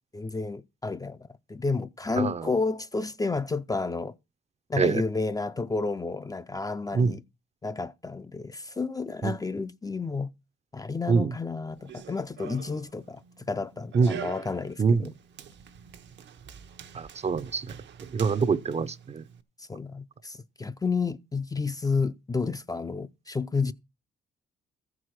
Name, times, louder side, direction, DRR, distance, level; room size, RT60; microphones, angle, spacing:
voice 1, 0.1-4.1 4.7-7.2 7.6-10.3 10.7-13.2 13.5-15.1 19.6-23.7, left 4 dB, 20° left, 0.5 m, -31 dB
voice 2, 2.2-2.5 4.8-5.0 6.9-7.1 9.2-9.3 11.1-11.3 13.9-14.2 14.8-15.1 16.9-17.8 18.1-19.2, right 5 dB, 35° right, 0.6 m, -25 dB
Run, 11.7-19.4, right 8 dB, 65° right, 0.9 m, -45 dB
14.0 x 4.8 x 5.9 m
cardioid pair, 90°, 20 cm